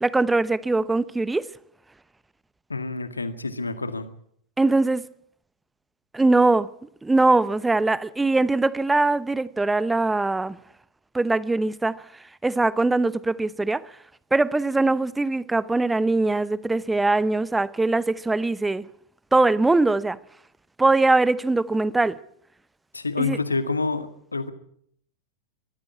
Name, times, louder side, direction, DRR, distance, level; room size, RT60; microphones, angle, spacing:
voice 1, 0.0-1.5 4.6-5.1 6.1-6.7 7.0-10.6 11.1-12.0 12.4-13.9 14.3-18.9 19.3-20.2 20.8-22.2 23.2-23.4, right 2 dB, 10° right, 0.8 m, -21 dB
voice 2, 2.7-4.1 22.9-24.5, left 3 dB, 80° left, 1.9 m, -28 dB
23.0 x 14.5 x 8.6 m
figure-of-eight pair, 90°, 0 cm